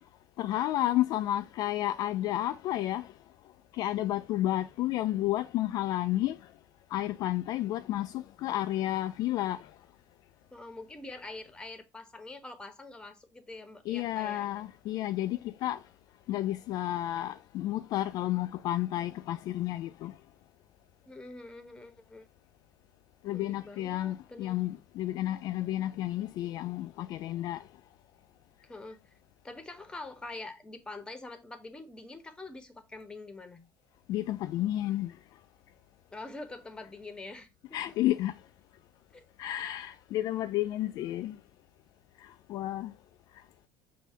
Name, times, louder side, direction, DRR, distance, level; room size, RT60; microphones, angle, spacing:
voice 1, 0.4-3.1 3.7-6.4 6.9-9.7 13.9-15.8 16.3-20.2 23.2-27.6 34.1-35.1 37.7-38.4 39.4-41.4 42.2-42.9, left 14 dB, 55° left, 0.3 m, -31 dB
voice 2, 10.5-14.5 21.0-22.3 23.3-24.6 28.6-29.1 29.4-33.7 36.1-37.8 39.1-39.2, left 2 dB, 10° left, 1.0 m, -45 dB
6.2 x 2.7 x 5.6 m
cardioid pair, 135°, 8 cm